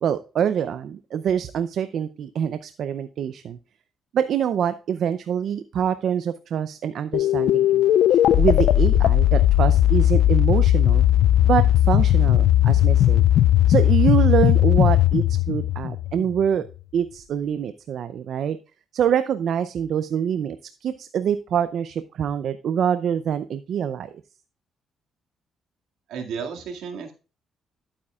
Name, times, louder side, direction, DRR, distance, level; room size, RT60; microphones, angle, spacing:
voice 1, 0.0-3.6 4.1-11.0 11.5-13.2 13.7-16.7 16.9-18.6 18.9-24.1, right 8 dB, 65° right, 12 dB, 0.5 m, -25 dB
sound 1, 7.1-16.5, left 12 dB, 80° left, 0.3 m, -18 dB
voice 2, 26.1-27.1, right 6 dB, 85° right, 2 dB, 2.1 m, -33 dB
11.5 x 8.5 x 2.4 m, 0.34 s
cardioid pair, 90°, 0 cm